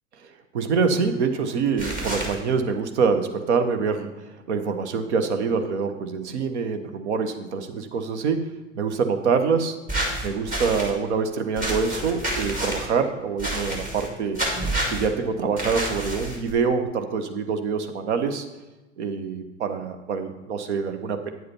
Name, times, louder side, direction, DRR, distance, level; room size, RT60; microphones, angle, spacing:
voice 1, 0.2-8.5 8.7-9.7 10.2-14.5 14.9-18.4 19.0-21.3, right 5 dB, 60° right, 7 dB, 1.1 m, -25 dB
sound 1, 1.8-2.3 9.9-10.9 11.6-12.9 13.4-14.1 14.3-15.1 15.6-16.5, right 1 dB, 20° right, 2.0 m, -28 dB
9.4 x 7.8 x 4.3 m, 1.1 s
figure-of-eight pair, 90°, 38 cm